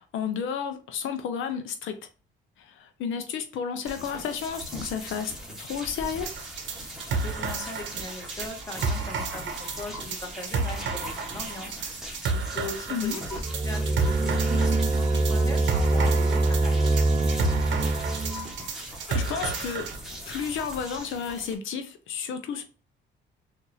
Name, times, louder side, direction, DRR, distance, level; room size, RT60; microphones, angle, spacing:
voice 1, 0.0-2.0 2.6-5.3 5.6-6.3 12.9-13.2 19.1-19.9 20.3-22.6, left 7 dB, 80° left, 0.5 m, -32 dB
sound 1, 3.8-21.5, equal, ahead, 1.2 m, -40 dB
sound 2, 6.3-20.0, right 4 dB, 70° right, 0.8 m, -32 dB
voice 2, 7.1-17.6, left 2 dB, 15° left, 1.4 m, -40 dB
sound 3, 13.3-18.5, right 2 dB, 20° right, 0.4 m, -24 dB
3.9 x 2.5 x 3.0 m
cardioid pair, 90°, 20 cm